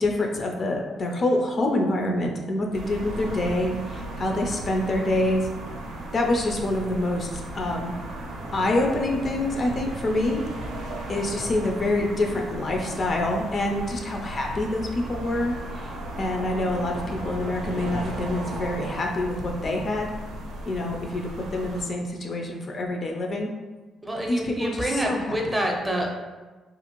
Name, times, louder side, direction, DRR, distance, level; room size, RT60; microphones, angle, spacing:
voice 1, 0.0-5.4 6.1-8.0 8.5-10.4 11.1-15.9 16.2-20.1 20.7-23.5 24.3-25.6, left 1 dB, 45° left, 1 dB, 0.4 m, -26 dB
sound 1, 2.7-21.8, right 1 dB, 90° right, 0.5 m, -35 dB
voice 2, 24.0-26.1, equal, 15° right, 0 dB, 0.5 m, -27 dB
2.5 x 2.4 x 2.9 m, 1.2 s
cardioid pair, 90°, 0 cm